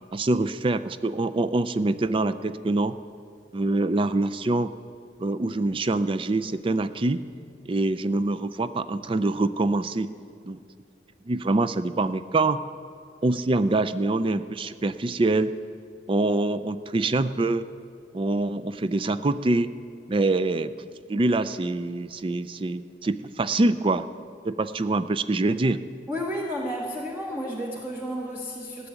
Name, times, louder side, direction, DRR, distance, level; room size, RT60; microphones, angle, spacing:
voice 1, 0.1-2.9 3.5-4.7 5.2-7.2 7.7-10.1 10.4-10.6 11.3-12.6 13.2-15.5 16.1-17.6 18.1-19.7 20.1-20.7 21.1-24.1 24.4-25.8, right 2 dB, 30° right, 12 dB, 0.4 m, -25 dB
voice 2, 26.1-28.9, equal, 10° right, -2 dB, 1.0 m, -32 dB
14.5 x 7.0 x 9.8 m, 2.4 s
head